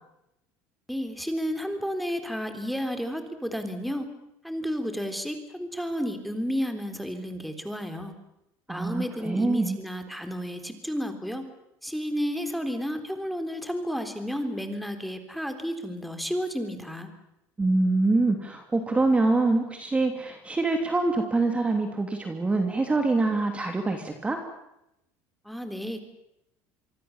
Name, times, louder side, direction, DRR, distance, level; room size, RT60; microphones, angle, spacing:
voice 1, 0.9-4.1 4.4-8.1 8.7-11.4 11.8-17.1 25.5-26.0, equal, ahead, 7 dB, 3.6 m, -32 dB
voice 2, 8.7-9.8 17.6-24.4, right 3 dB, 15° right, 5 dB, 2.9 m, -25 dB
26.0 x 23.5 x 7.3 m, 0.85 s
supercardioid pair, 115°, 8 cm